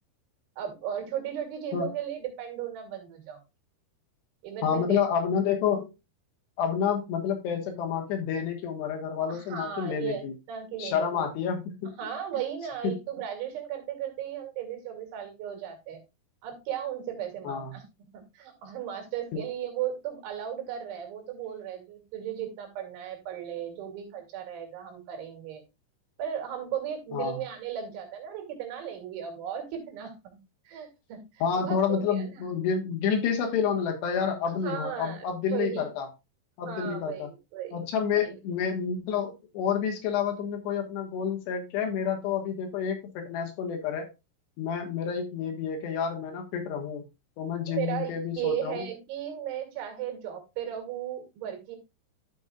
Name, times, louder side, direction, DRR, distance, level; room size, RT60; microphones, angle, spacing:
voice 1, 0.6-3.4 4.4-5.0 9.3-11.3 11.9-16.0 16.4-17.8 18.1-25.6 26.2-30.4 30.7-32.4 34.6-35.2 35.5-35.8 36.7-37.3 37.5-37.9 47.7-51.8, right 10 dB, 85° right, 3 dB, 4.7 m, -36 dB
voice 2, 4.6-5.9 6.6-10.3 10.8-11.9 12.8-13.0 17.5-17.8 19.3-19.4 27.1-27.4 31.4-36.1 36.6-37.3 37.7-44.1 44.6-47.0 47.4-48.9, left 7 dB, 70° left, 3 dB, 3.4 m, -29 dB
12.5 x 6.2 x 2.4 m, 0.24 s
omnidirectional pair, 5.3 m